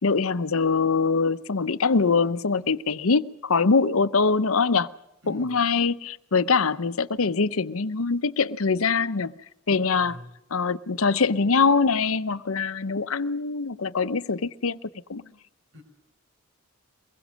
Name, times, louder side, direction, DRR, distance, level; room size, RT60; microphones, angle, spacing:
voice 1, 0.0-4.9 5.3-9.3 9.7-10.1 10.5-14.8 15.1-15.2, left 4 dB, 70° left, 0.8 m, -23 dB
voice 2, 5.2-5.6 9.7-10.4 15.7-15.8, left 1 dB, 65° right, 5.1 m, -45 dB
23.5 x 21.5 x 6.4 m
head